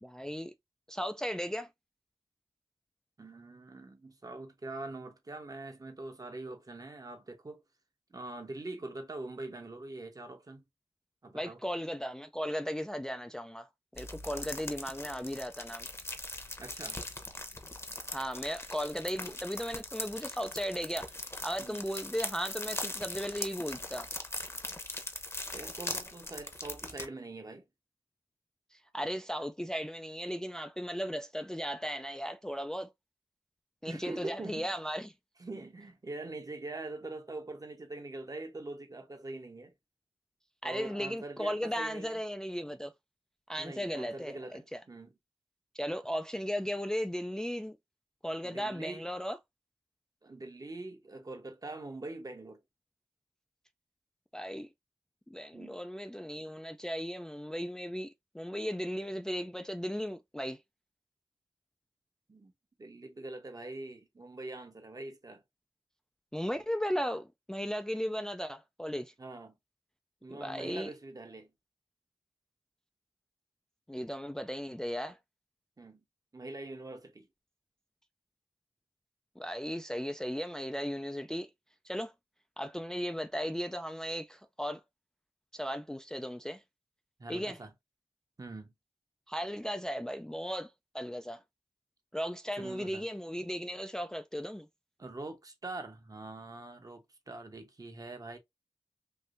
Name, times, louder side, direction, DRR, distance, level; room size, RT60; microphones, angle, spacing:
voice 1, 0.0-0.5 0.9-1.7 11.3-15.9 18.1-21.1 21.4-24.1 28.7-32.9 33.8-35.1 40.6-42.9 43.5-44.8 45.7-47.8 48.2-49.4 54.3-54.7 55.3-60.6 66.3-69.1 70.3-70.9 73.9-75.2 79.4-81.5 81.8-82.1 82.6-84.8 85.5-86.6 87.3-87.6 89.3-91.4 92.1-94.7, equal, 5° left, 0.4 m, -36 dB
voice 2, 3.2-7.6 8.1-10.6 11.2-11.6 16.6-17.0 21.6-21.9 25.5-27.7 33.9-34.7 35.4-39.7 40.6-42.2 43.6-45.1 48.4-49.0 50.2-52.6 55.5-55.8 62.3-62.5 62.8-65.4 69.2-69.5 70.2-71.5 75.8-76.0 76.3-77.3 87.2-87.7 88.4-88.7 92.6-93.0 95.0-98.4, right 2 dB, 40° right, 1.0 m, -43 dB
sound 1, 14.0-27.1, left 2 dB, 25° left, 0.9 m, -41 dB
3.4 x 2.7 x 2.6 m
cardioid pair, 45°, 10 cm